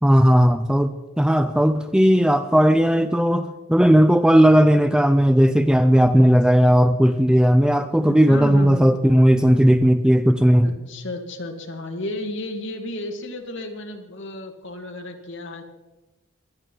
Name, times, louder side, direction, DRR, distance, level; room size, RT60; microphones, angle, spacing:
voice 1, 0.0-10.8, equal, 5° right, 10 dB, 0.4 m, -16 dB
voice 2, 8.0-8.9 10.6-15.6, left 1 dB, 60° left, 4 dB, 1.9 m, -32 dB
19.5 x 11.5 x 4.5 m, 1.2 s
head